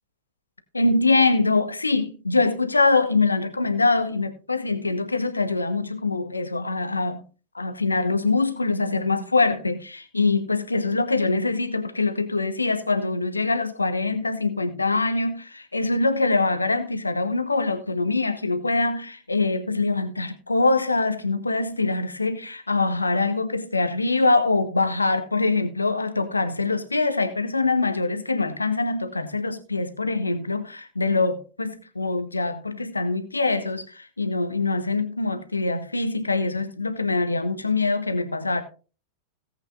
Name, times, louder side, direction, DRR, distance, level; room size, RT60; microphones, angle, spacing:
voice 1, 0.7-7.2 7.5-38.6, left 3 dB, 80° left, 1.2 m, -24 dB
17.5 x 8.2 x 2.5 m
figure-of-eight pair, 90°, 0 cm